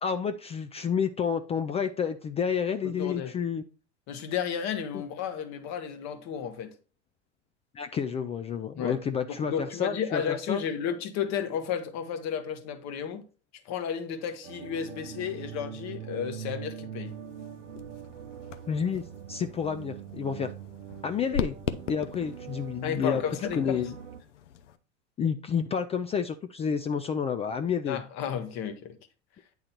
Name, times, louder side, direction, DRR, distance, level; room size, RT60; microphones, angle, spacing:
voice 1, 0.0-3.6 7.7-10.2 10.5-10.6 18.7-20.5 21.0-21.5 21.9-23.2 23.5-24.0 25.2-28.0, left 7 dB, 20° left, 0.3 m, -30 dB
voice 2, 2.8-3.3 4.1-6.7 8.8-9.0 9.3-13.2 13.6-17.1 22.8-23.8 27.9-29.0, left 8 dB, 50° left, 1.3 m, -33 dB
sound 1, 14.4-24.2, right 9 dB, 85° right, 0.6 m, -42 dB
sound 2, 17.0-24.8, left 7 dB, 80° left, 0.7 m, -40 dB
8.8 x 3.9 x 4.3 m
hypercardioid pair, 90°, 36 cm